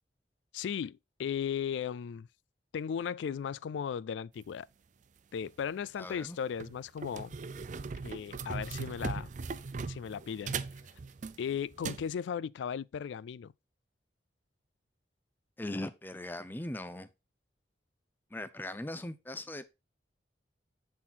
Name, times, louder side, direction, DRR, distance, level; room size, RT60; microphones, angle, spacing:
voice 1, 0.5-2.3 2.7-4.7 5.3-7.3 8.0-9.3 9.9-10.6 11.4-13.5, left 7 dB, 80° left, 0.3 m, -36 dB
sound 1, 5.5-5.7 6.2-6.3 6.6-12.1, right 4 dB, 45° right, 0.4 m, -39 dB
voice 2, 6.0-6.4 15.6-17.1 18.3-19.6, left 1 dB, 10° left, 0.5 m, -39 dB
7.6 x 3.9 x 4.2 m
head